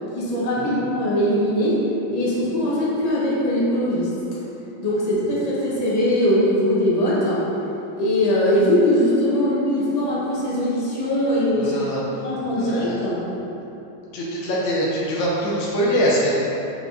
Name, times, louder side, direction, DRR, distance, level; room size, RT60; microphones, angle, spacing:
voice 1, 0.1-1.8 2.1-4.1 4.8-7.5 8.0-13.2, equal, 25° left, -7 dB, 1.0 m, -21 dB
voice 2, 11.6-12.3 12.6-13.1 14.1-16.4, equal, 70° left, -6 dB, 1.5 m, -23 dB
6.1 x 5.1 x 3.9 m, 2.9 s
omnidirectional pair, 2.3 m